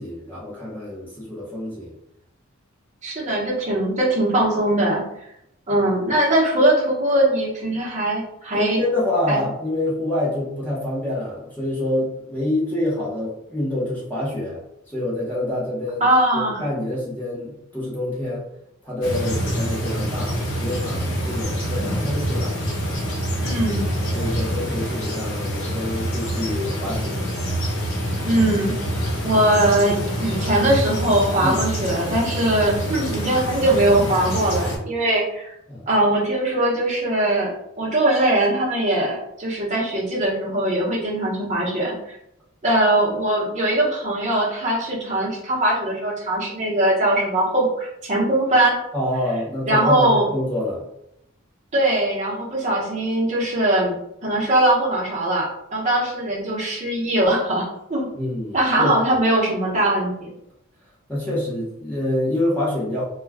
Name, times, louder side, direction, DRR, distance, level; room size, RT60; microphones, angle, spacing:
voice 1, 0.0-1.9 5.7-5.8 8.5-14.6 14.9-16.0 16.3-18.4 18.8-22.5 23.4-23.6 24.1-27.2 31.4-31.6 35.7-35.9 48.9-50.8 58.1-58.9 61.1-63.0, left 1 dB, 10° left, -7 dB, 0.8 m, -26 dB
voice 2, 3.0-5.1 5.7-8.8 9.3-9.4 16.0-16.6 23.4-23.8 28.2-35.5 35.9-41.9 42.6-48.8 49.7-50.2 51.7-53.9 54.2-58.1 58.5-60.3, right 1 dB, 35° right, -5 dB, 0.9 m, -21 dB
sound 1, 19.0-34.8, equal, 90° left, 0.9 m, -26 dB
2.3 x 2.2 x 3.3 m, 0.79 s
head